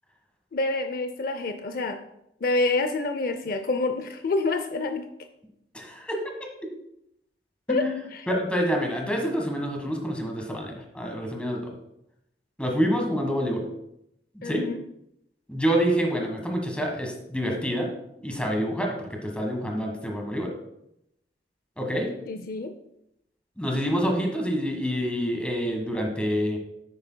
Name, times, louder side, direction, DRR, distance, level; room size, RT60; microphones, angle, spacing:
voice 1, 0.5-2.0 2.4-5.1 7.7-7.9 8.1-8.3 14.4-14.8 22.3-22.7, left 2 dB, 55° left, 7 dB, 0.5 m, -27 dB
voice 2, 5.7-6.2 7.7-11.7 12.6-13.6 14.4-14.6 15.5-17.9 18.2-20.5 21.8-22.1 23.6-26.6, equal, 5° left, 2 dB, 1.5 m, -27 dB
9.7 x 8.9 x 2.2 m, 0.80 s
head